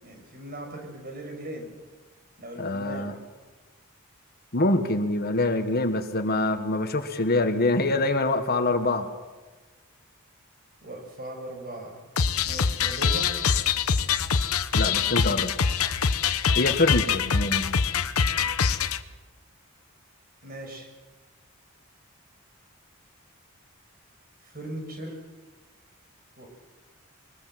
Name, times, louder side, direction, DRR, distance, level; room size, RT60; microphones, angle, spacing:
voice 1, 0.0-1.7 2.4-3.2 10.8-12.0 12.4-13.3 20.4-20.9 24.4-25.3 26.4-26.5, right 1 dB, 45° right, 3 dB, 6.2 m, -38 dB
voice 2, 2.6-3.2 4.5-9.1 14.7-15.5 16.6-17.8, left 2 dB, 45° left, 7 dB, 1.6 m, -25 dB
sound 1, 12.2-19.0, left 6 dB, 85° left, 1.0 m, -24 dB
23.5 x 20.0 x 7.6 m, 1.3 s
head